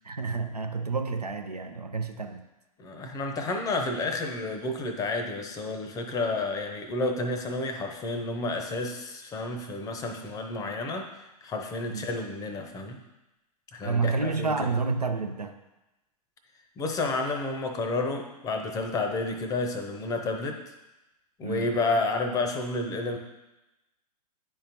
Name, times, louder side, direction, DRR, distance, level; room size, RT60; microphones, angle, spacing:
voice 1, 0.0-2.4 11.9-12.0 13.8-15.6 21.4-21.7, right 4 dB, 85° right, 6 dB, 0.6 m, -29 dB
voice 2, 2.8-11.1 11.4-13.0 13.7-14.7 16.8-20.6 21.4-23.2, left 2 dB, 15° left, 5 dB, 0.7 m, -30 dB
10.0 x 3.8 x 2.9 m, 1.0 s
figure-of-eight pair, 105°, 20 cm